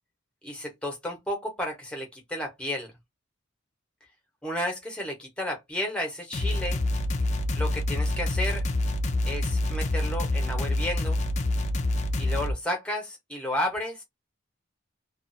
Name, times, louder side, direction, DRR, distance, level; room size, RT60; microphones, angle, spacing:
voice 1, 0.4-2.9 4.4-6.8 7.6-8.6 9.3-11.2 12.2-14.0, left 1 dB, 5° left, 1.0 m, -32 dB
sound 1, 6.3-12.5, left 1 dB, 35° left, 0.5 m, -27 dB
2.5 x 2.4 x 2.6 m
head